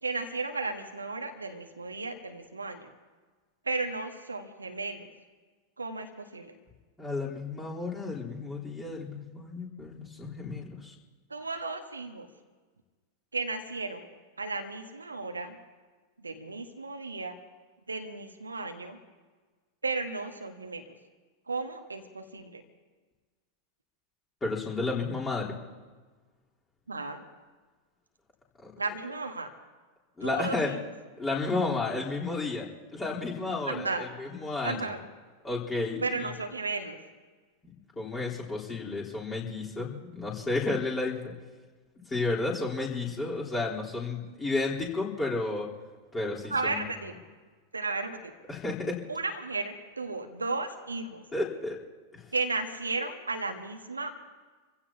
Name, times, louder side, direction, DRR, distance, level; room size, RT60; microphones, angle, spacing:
voice 1, 0.0-2.9 3.6-5.1 5.8-6.5 11.3-12.3 13.3-14.0 14.4-15.6 16.2-17.3 17.9-19.0 19.8-20.9 21.5-22.6 26.9-27.2 28.8-29.5 30.2-30.9 33.7-34.0 34.6-35.0 36.0-37.0 46.5-47.1 47.7-48.2 49.1-51.2 52.3-54.2, right 3 dB, 80° right, 5 dB, 1.4 m, -34 dB
voice 2, 7.0-10.9 24.4-25.6 28.6-28.7 30.2-30.7 31.2-32.7 32.9-34.9 35.4-36.3 37.6-41.3 42.1-45.7 46.1-46.8 48.5-49.0 51.3-51.8 52.1-52.2, left 3 dB, 15° left, -5 dB, 3.7 m, -32 dB
28.5 x 16.0 x 2.9 m, 1.4 s
figure-of-eight pair, 90°, 0 cm